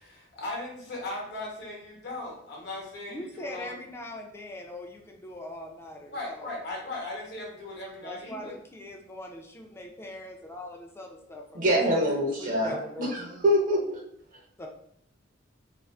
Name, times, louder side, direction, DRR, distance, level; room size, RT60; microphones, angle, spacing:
voice 1, 0.0-3.8 6.1-8.6 14.3-14.4, left 2 dB, 60° left, -2 dB, 0.8 m, -38 dB
voice 2, 3.1-6.5 8.0-11.8 12.4-13.2 14.6-14.7, left 1 dB, 15° left, 1 dB, 0.3 m, -41 dB
voice 3, 11.5-14.0, equal, 45° right, -1 dB, 0.5 m, -25 dB
2.4 x 2.4 x 2.3 m, 0.70 s
head